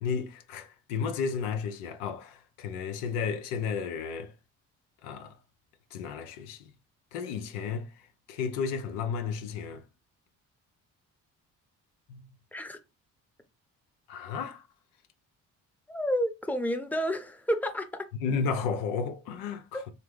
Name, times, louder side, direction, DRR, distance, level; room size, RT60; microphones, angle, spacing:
voice 1, 0.0-4.3 5.0-5.4 5.9-6.7 7.1-7.9 8.3-9.8 12.1-12.3 14.1-14.6 18.2-19.7, left 6 dB, 80° left, 0.7 m, -33 dB
voice 2, 15.9-18.1 19.7-19.8, equal, 5° left, 0.7 m, -30 dB
3.3 x 2.7 x 3.6 m
hypercardioid pair, 55°, 40 cm